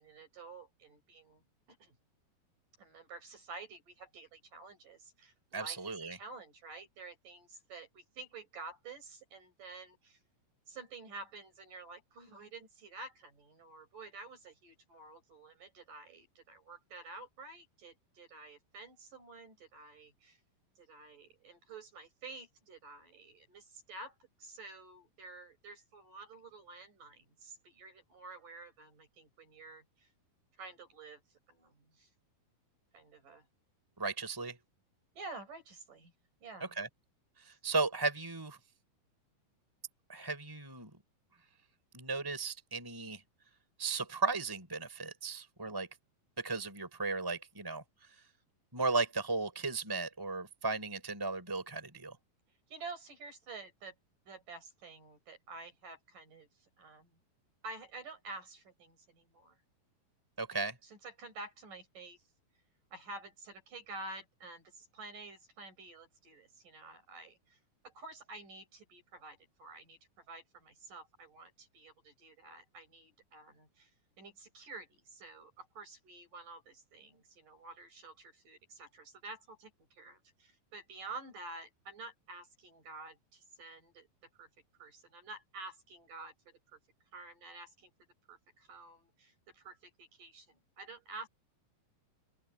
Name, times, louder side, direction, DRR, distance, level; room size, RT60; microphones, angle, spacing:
voice 1, 0.0-1.4 1.7-1.9 2.8-10.2 10.7-20.4 20.8-30.1 30.6-31.2 31.5-32.1 32.9-33.5 35.1-36.1 36.4-36.7 37.5-37.6 52.7-53.9 54.3-56.5 56.8-57.1 57.6-59.6 60.8-62.2 62.9-67.6 67.8-70.0 70.3-73.9 74.2-79.7 80.0-84.1 84.4-84.5 84.8-86.8 87.1-87.9 88.3-91.3, right 3 dB, 55° right, 8.3 m, -50 dB
voice 2, 5.5-6.2 34.0-34.6 36.6-36.9 37.4-38.6 40.1-40.9 41.9-43.2 43.8-45.9 46.4-47.8 48.7-52.2 60.4-60.7, right 3 dB, 5° right, 4.3 m, -35 dB
open air
omnidirectional pair, 4.4 m